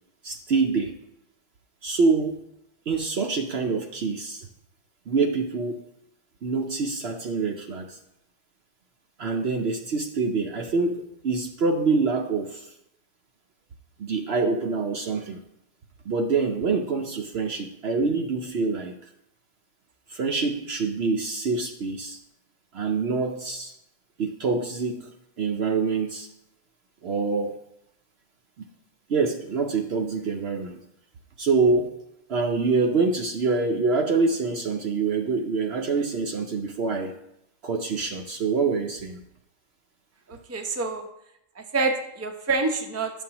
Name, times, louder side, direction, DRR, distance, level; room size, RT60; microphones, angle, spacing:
voice 1, 0.2-0.9 1.8-2.4 2.9-4.5 5.1-5.8 6.4-8.0 9.2-12.7 14.0-15.4 16.1-19.0 20.1-22.2 22.7-23.7 24.2-25.1 25.4-26.3 27.0-27.6 29.1-30.8 31.4-31.9 32.3-37.1 37.6-39.2, right 4 dB, 55° right, 4 dB, 0.8 m, -25 dB
voice 2, 40.3-41.0 41.6-43.1, right 3 dB, 15° right, 4 dB, 0.5 m, -27 dB
11.5 x 7.3 x 2.9 m, 0.80 s
omnidirectional pair, 1.5 m